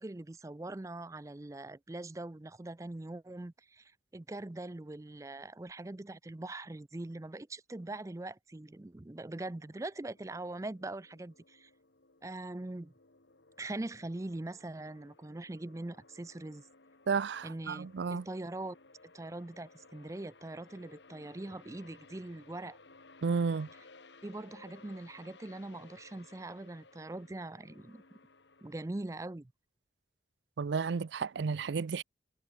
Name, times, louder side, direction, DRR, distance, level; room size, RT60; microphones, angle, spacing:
voice 1, 0.0-11.7 12.2-12.9 13.6-16.6 17.4-18.8 19.1-22.8 24.2-28.0 28.6-29.5, right 2 dB, 15° right, 0.4 m, -42 dB
sound 1, 9.2-28.9, left 3 dB, 75° left, 2.1 m, -59 dB
voice 2, 17.1-18.3 23.2-23.7 30.6-32.0, right 5 dB, 75° right, 0.4 m, -32 dB
head